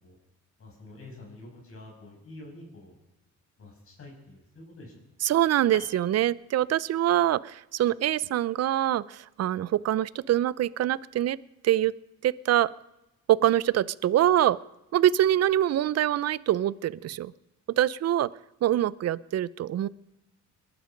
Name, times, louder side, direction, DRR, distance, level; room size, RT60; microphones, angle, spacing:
voice 1, 0.6-2.9 3.6-5.0, left 2 dB, 45° left, -1 dB, 6.4 m, -47 dB
voice 2, 5.2-11.4 11.6-11.9 12.2-12.7 13.3-14.6 14.9-17.3 17.8-18.3 18.6-19.9, right 12 dB, 55° right, 21 dB, 0.6 m, -24 dB
Piano, 5.7-7.2 7.5-7.7, left 7 dB, 80° left, 1.6 m, -48 dB
21.5 x 12.0 x 5.2 m, 0.94 s
cardioid pair, 90°, 30 cm